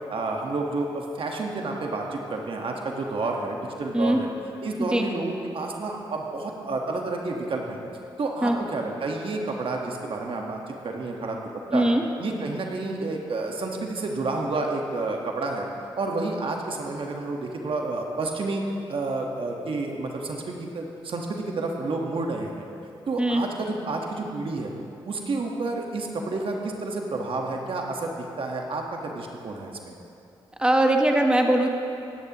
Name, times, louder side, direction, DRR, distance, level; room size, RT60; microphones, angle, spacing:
voice 1, 0.1-4.3 4.6-7.8 8.2-11.4 11.7-11.8 12.2-15.7 16.0-18.6 18.9-22.7 23.1-24.7 25.1-29.9, right 3 dB, 65° right, 1 dB, 1.4 m, -30 dB
voice 2, 11.7-12.0 23.2-23.4 30.6-31.7, right 1 dB, 10° right, 2 dB, 1.1 m, -21 dB
16.0 x 10.5 x 3.0 m, 2.8 s
supercardioid pair, 50°, 10 cm